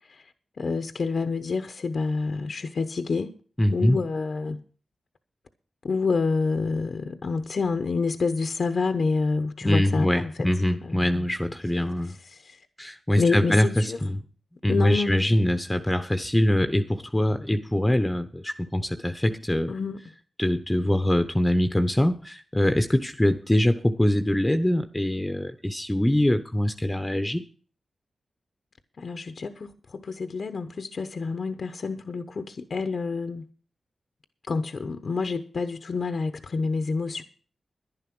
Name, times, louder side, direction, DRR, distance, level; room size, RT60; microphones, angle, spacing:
voice 1, 0.6-3.3 3.7-4.6 5.8-10.3 10.8-11.2 12.2-12.6 13.2-14.0 14.7-15.4 19.7-20.0 29.0-33.4 34.5-37.2, left 4 dB, 65° left, 0.9 m, -28 dB
voice 2, 3.6-4.0 9.6-12.2 12.8-14.2 14.6-19.7 20.4-27.4, left 1 dB, 15° left, 1.0 m, -23 dB
11.0 x 10.5 x 6.1 m
cardioid pair, 50°, 0 cm